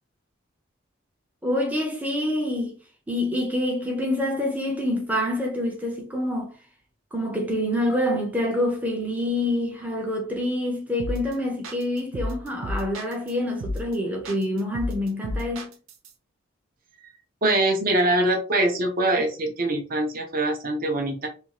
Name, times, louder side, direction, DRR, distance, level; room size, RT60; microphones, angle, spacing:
voice 1, 1.4-2.8 3.1-6.5 7.1-15.7, left 1 dB, 10° right, 0.6 m, -26 dB
sound 1, 11.0-11.3 11.6-13.3 13.6-13.9 14.2-16.1, left 1 dB, 85° right, 0.5 m, -32 dB
voice 2, 17.4-21.3, right 1 dB, 45° right, 0.7 m, -23 dB
2.6 x 2.3 x 2.9 m
head